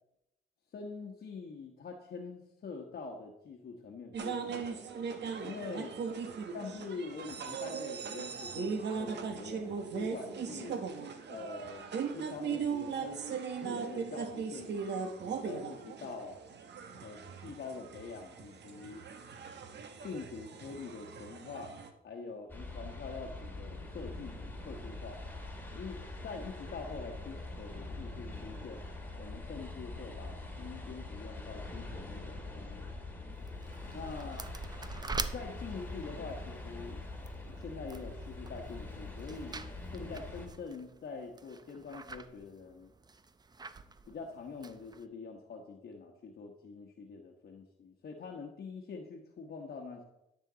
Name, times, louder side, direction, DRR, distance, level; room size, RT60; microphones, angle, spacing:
voice 1, 0.7-4.9 5.4-5.9 6.5-10.8 11.3-14.8 15.4-16.4 17.0-19.0 20.0-21.7 22.0-25.2 25.7-28.8 29.2-32.9 33.8-34.5 35.3-37.0 37.4-39.6 39.9-42.9 44.1-50.0, left 4 dB, 50° left, 1 dB, 1.2 m, -45 dB
sound 1, 4.1-21.9, right 6 dB, 60° right, 1.2 m, -39 dB
sound 2, 22.5-40.5, left 2 dB, 10° left, 2.2 m, -44 dB
sound 3, 33.3-45.1, right 4 dB, 20° right, 0.6 m, -46 dB
12.5 x 7.4 x 3.9 m, 0.87 s
cardioid pair, 90°, 20 cm